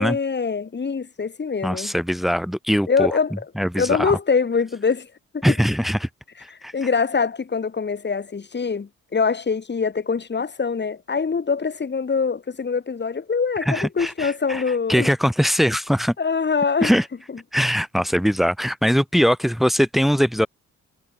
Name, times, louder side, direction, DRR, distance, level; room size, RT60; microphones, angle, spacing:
voice 1, 0.0-1.9 2.9-3.5 3.8-5.1 5.3-5.5 6.5-15.1 16.2-16.9 17.3-17.4, left 5 dB, 35° left, 7.6 m, -24 dB
voice 2, 1.6-3.1 3.6-4.2 5.4-6.1 6.6-6.7 13.7-14.6 14.9-16.1 16.8-17.1 17.5-20.5, equal, ahead, 4.3 m, -21 dB
cardioid pair, 90°, 30 cm